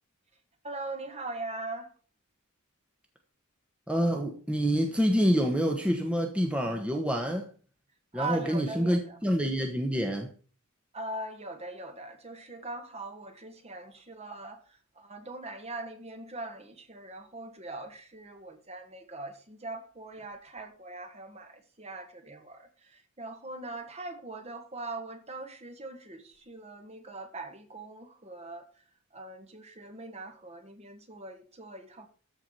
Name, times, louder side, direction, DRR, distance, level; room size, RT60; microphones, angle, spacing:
voice 1, 0.6-1.9 8.1-9.2 10.9-32.1, right 2 dB, 30° right, 1.8 m, -41 dB
voice 2, 3.9-7.4 8.1-10.3, equal, 5° right, 1.3 m, -27 dB
14.0 x 4.8 x 6.8 m
head